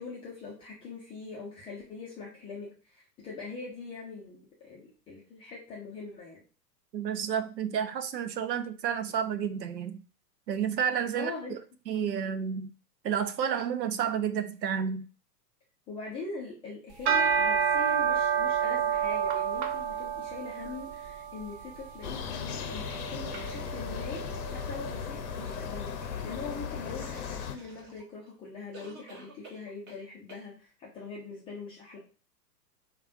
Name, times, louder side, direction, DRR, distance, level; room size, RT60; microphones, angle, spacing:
voice 1, 0.0-6.4 11.1-11.6 15.9-24.2 24.5-25.9 26.2-32.0, left 4 dB, 10° left, 0.4 m, -42 dB
voice 2, 6.9-10.0 10.5-11.3 11.9-12.7 13.0-15.1, right 8 dB, 85° right, 0.6 m, -30 dB
sound 1, 16.9-26.3, right 7 dB, 45° right, 0.6 m, -30 dB
sound 2, 22.0-27.6, left 8 dB, 60° left, 0.7 m, -37 dB
sound 3, 25.4-28.3 28.7-30.0 30.3-30.5, right 2 dB, 20° right, 1.3 m, -51 dB
4.8 x 2.4 x 2.5 m
figure-of-eight pair, 110°, 49 cm